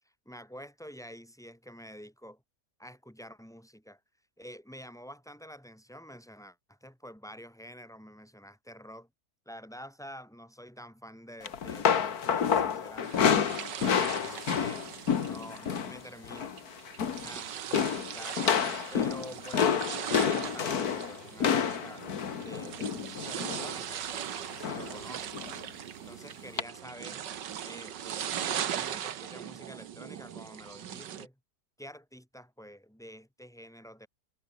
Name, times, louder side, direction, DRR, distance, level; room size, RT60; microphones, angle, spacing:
voice 1, 0.2-2.4 2.8-4.0 4.4-9.1 9.4-13.6 13.9-14.8 15.3-16.5 17.2-18.4 18.9-22.1 22.4-25.5 26.1-27.2 27.6-31.4 31.8-34.1, equal, ahead, 4.7 m, -48 dB
sound 1, 11.4-16.0 16.2-16.6 16.9-17.4 17.7-23.8 24.6-25.0 25.3-25.5 26.6-26.7, left 7 dB, 60° left, 1.9 m, -29 dB
sound 2, 13.0-31.3, right 9 dB, 90° right, 1.9 m, -39 dB
omnidirectional pair, 1.8 m